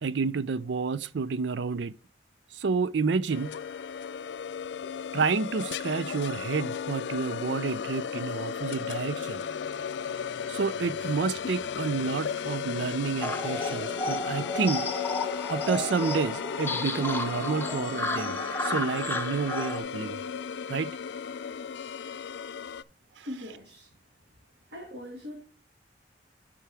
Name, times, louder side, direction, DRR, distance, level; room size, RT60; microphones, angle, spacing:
voice 1, 0.0-1.9 2.5-3.6 5.1-9.4 10.5-14.9 15.5-20.2 20.7-21.0 23.2-23.3, right 5 dB, 85° right, 0.5 m, -30 dB
sound 1, 3.3-22.8, left 7 dB, 75° left, 0.4 m, -35 dB
sound 2, 13.2-19.8, left 2 dB, 10° left, 0.8 m, -32 dB
voice 2, 23.2-23.9 24.7-25.4, left 1 dB, 65° right, 2.2 m, -41 dB
11.5 x 4.6 x 3.4 m
head